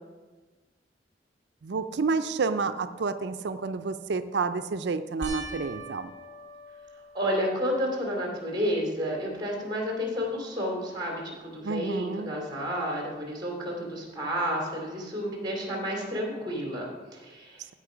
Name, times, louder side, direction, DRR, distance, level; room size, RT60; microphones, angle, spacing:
voice 1, 1.6-6.1 11.6-12.3, right 4 dB, 80° right, 10 dB, 0.5 m, -29 dB
sound 1, 5.2-7.8 8.4-9.0 9.3-9.4 12.6-12.7, right 2 dB, 40° right, 2.1 m, -43 dB
voice 2, 7.1-17.7, equal, 25° right, 0 dB, 2.7 m, -31 dB
15.0 x 5.3 x 5.0 m, 1.3 s
head